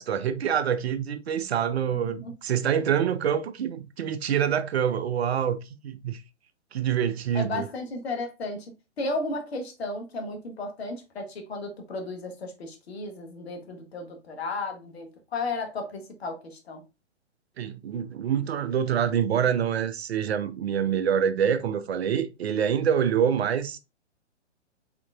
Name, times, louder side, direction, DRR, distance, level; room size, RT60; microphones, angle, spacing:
voice 1, 0.0-5.6 5.8-6.2 6.7-7.7 17.6-23.8, right 8 dB, 60° right, 0.5 m, -26 dB
voice 2, 7.3-16.8, left 2 dB, 60° left, 1.1 m, -34 dB
3.7 x 3.6 x 2.3 m
figure-of-eight pair, 125°, 35 cm